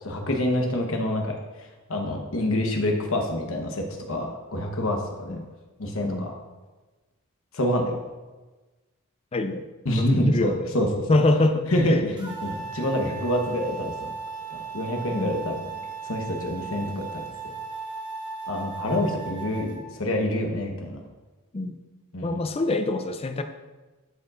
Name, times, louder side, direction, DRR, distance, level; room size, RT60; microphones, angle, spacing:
voice 1, 0.0-5.4 5.8-6.3 7.5-7.9 9.8-11.1 11.7-14.1 14.5-15.6 16.0-17.5 18.5-21.0 22.1-22.4, left 1 dB, 65° left, 2 dB, 1.1 m, -27 dB
voice 2, 9.3-9.6 10.0-10.7 11.1-11.7 12.2-12.3 15.1-15.5 16.9-17.0 21.5-21.8 22.2-23.4, left 2 dB, 25° left, 7 dB, 0.4 m, -25 dB
sound 1, 12.2-19.8, right 5 dB, 20° right, 1.0 m, -36 dB
11.5 x 5.1 x 2.5 m, 1.2 s
head